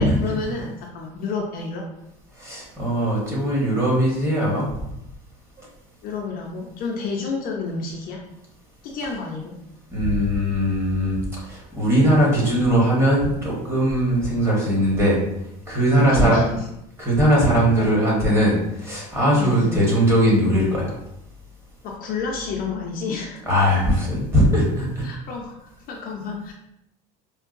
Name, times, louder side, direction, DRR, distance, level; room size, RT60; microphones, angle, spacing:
voice 1, 0.2-1.8 6.0-8.2 8.8-9.6 15.9-16.7 17.7-18.0 19.4-19.8 21.8-23.4 25.0-26.5, left 4 dB, 50° left, 0 dB, 0.6 m, -30 dB
voice 2, 2.4-4.7 5.6-5.7 9.9-11.2 11.5-15.2 15.7-16.4 17.0-20.9 23.5-25.1, equal, 15° right, -5 dB, 1.2 m, -20 dB
4.5 x 2.2 x 2.5 m, 0.83 s
cardioid pair, 135°, 19 cm